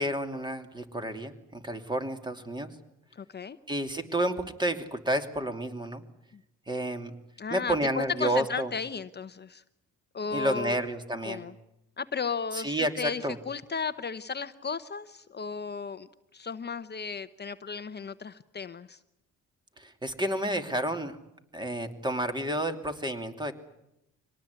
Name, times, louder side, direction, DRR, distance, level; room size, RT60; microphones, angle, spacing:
voice 1, 0.0-2.7 3.7-6.0 6.7-7.1 7.5-8.7 10.3-11.5 12.5-13.4 19.8-21.2 21.5-23.5, right 1 dB, 15° right, 7 dB, 2.8 m, -30 dB
voice 2, 3.1-3.6 6.3-6.4 7.4-9.6 10.1-10.8 11.2-11.5 12.0-16.1 16.3-19.0, left 5 dB, 35° left, 12 dB, 0.9 m, -35 dB
25.0 x 19.0 x 9.6 m, 0.85 s
cardioid pair, 90°, 30 cm